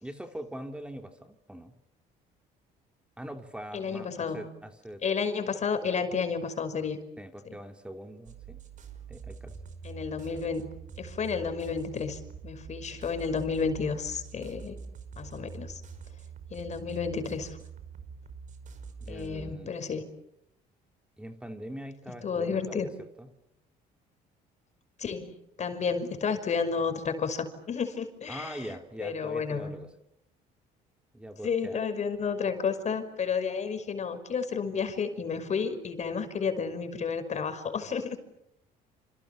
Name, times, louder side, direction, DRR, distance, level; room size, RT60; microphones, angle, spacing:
voice 1, 0.0-1.7 3.2-5.0 7.2-8.6 9.1-9.6 19.0-19.7 21.2-22.9 23.2-23.3 28.3-29.9 31.1-31.8, right 1 dB, 5° right, 5 dB, 2.8 m, -42 dB
voice 2, 3.7-4.5 5.0-7.0 7.4-7.6 9.8-14.8 15.2-15.8 16.5-17.6 19.1-20.1 22.2-22.9 25.0-29.7 31.4-38.2, left 5 dB, 45° left, 9 dB, 5.7 m, -31 dB
sound 1, 8.2-19.5, right 5 dB, 50° right, 5.1 m, -45 dB
29.0 x 28.5 x 7.2 m, 0.79 s
cardioid pair, 110°, 17 cm